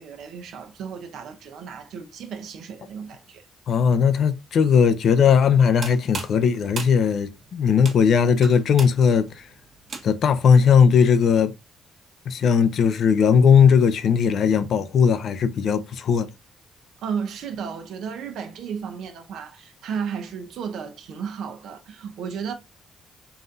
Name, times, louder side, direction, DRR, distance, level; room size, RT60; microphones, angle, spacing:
voice 1, 0.0-3.4 17.0-22.5, right 7 dB, 75° right, 0.8 m, -33 dB
voice 2, 3.7-9.4 10.0-11.5 12.3-16.3, left 6 dB, 65° left, 0.5 m, -18 dB
sound 1, 5.5-10.4, right 4 dB, 50° right, 1.2 m, -38 dB
4.0 x 2.6 x 3.9 m
cardioid pair, 90°, 0 cm